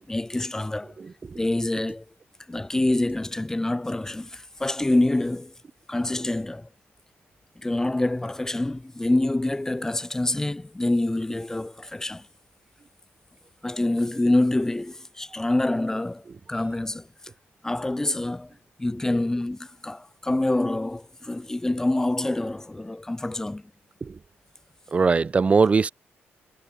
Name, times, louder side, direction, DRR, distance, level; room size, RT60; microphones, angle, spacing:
voice 1, 0.1-0.9 1.3-2.0 2.5-5.5 5.9-6.7 7.6-12.2 13.6-17.1 17.6-18.5 18.8-23.6, left 2 dB, 10° left, 1.7 m, -26 dB
voice 2, 24.9-25.9, right 4 dB, 30° right, 0.4 m, -20 dB
cardioid pair, 115°, 5 cm